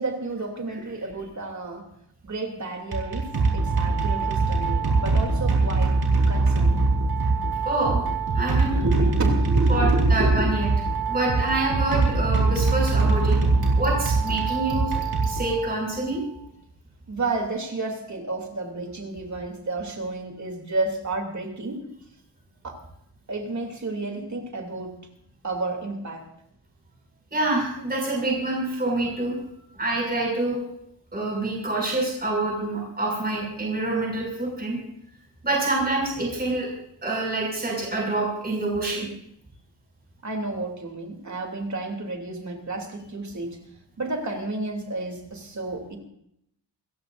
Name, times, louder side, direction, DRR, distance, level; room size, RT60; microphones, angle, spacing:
voice 1, 0.0-1.9 2.2-6.0 6.3-6.9 8.8-10.5 17.1-21.9 22.6-22.8 23.3-25.0 25.4-26.2 40.2-43.6 44.0-46.0, right 2 dB, 40° right, 3 dB, 2.9 m, -31 dB
sound 1, 2.8-16.0, right 3 dB, 60° right, 4.5 m, -22 dB
voice 2, 7.6-8.0 8.3-8.8 9.7-10.7 11.1-13.4 13.8-15.0 15.3-16.2 27.3-29.3 29.7-30.6 31.1-34.8 35.4-36.7 37.0-39.1, right 2 dB, 20° right, -2 dB, 6.3 m, -26 dB
28.5 x 15.0 x 2.6 m, 0.74 s
wide cardioid pair, 155°, 44 cm